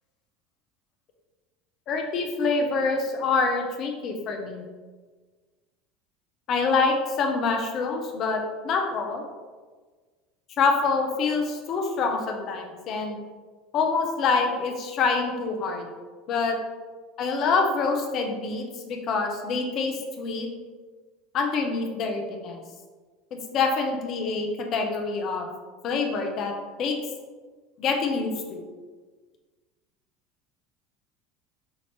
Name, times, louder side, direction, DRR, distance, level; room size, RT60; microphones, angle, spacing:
voice 1, 1.9-4.6 6.5-9.2 10.6-13.2 13.7-15.9 16.3-16.6 17.2-20.5 21.3-22.6 23.3-25.5 25.8-26.5 26.8-27.0 27.8-28.6, left 4 dB, 50° left, 3 dB, 0.7 m, -26 dB
5.7 x 2.8 x 3.2 m, 1.4 s
hypercardioid pair, 80°, 0 cm